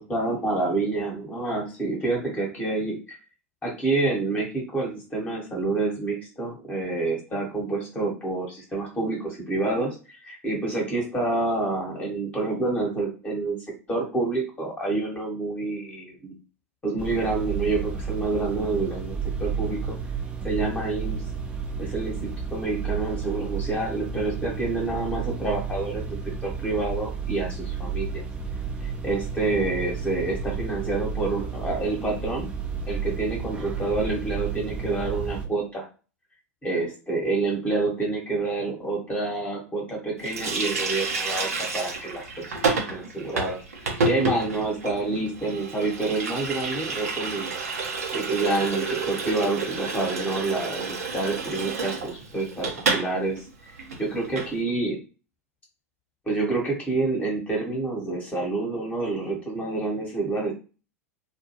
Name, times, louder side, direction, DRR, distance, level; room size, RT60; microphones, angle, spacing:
voice 1, 0.0-3.0 3.6-13.6 13.9-16.3 16.8-20.0 20.4-21.2 21.8-28.2 28.8-32.5 32.9-35.8 36.6-42.6 42.9-43.6 44.0-47.5 48.1-53.3 54.0-55.0 56.3-60.5, right 3 dB, 15° left, -2 dB, 1.1 m, -28 dB
sound 1, 17.0-35.5, right 6 dB, 10° right, 0.6 m, -32 dB
Water tap faucet, 40.2-53.1 53.4-53.5 53.8-54.5, right 4 dB, 70° right, 0.8 m, -29 dB
2.4 x 2.2 x 3.0 m, 0.33 s
figure-of-eight pair, 90°, 8 cm